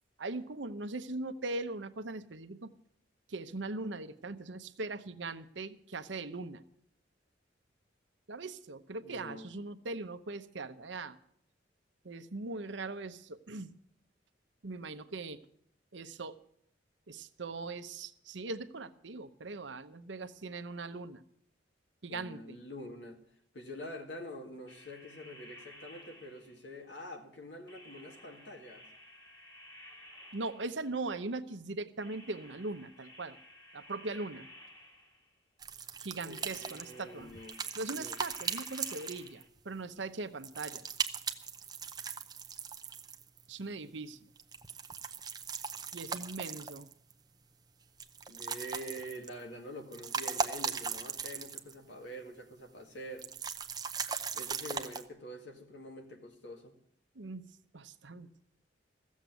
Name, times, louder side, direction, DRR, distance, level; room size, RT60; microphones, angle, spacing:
voice 1, 0.2-2.7 3.3-6.6 8.3-11.2 12.0-13.7 14.6-15.4 15.9-16.4 17.1-21.2 22.0-22.6 30.3-33.4 33.7-34.5 36.0-37.3 37.7-40.9 43.5-44.2 45.9-46.9 57.1-57.4 57.7-58.3, right 3 dB, 70° right, 0.9 m, -40 dB
voice 2, 9.0-9.5 22.1-23.2 23.5-28.9 36.3-37.6 37.9-38.2 48.3-53.3 54.3-56.7, equal, 70° left, 2.2 m, -46 dB
sound 1, 24.7-26.8 27.7-31.1 32.0-35.4 36.4-39.5, left 1 dB, 25° left, 1.9 m, -54 dB
sound 2, 35.6-39.6 40.4-43.5 44.4-47.1 48.0-49.4 49.8-51.8 52.1-52.2 53.2-55.0, right 5 dB, 20° right, 0.7 m, -39 dB
15.0 x 7.4 x 9.2 m
head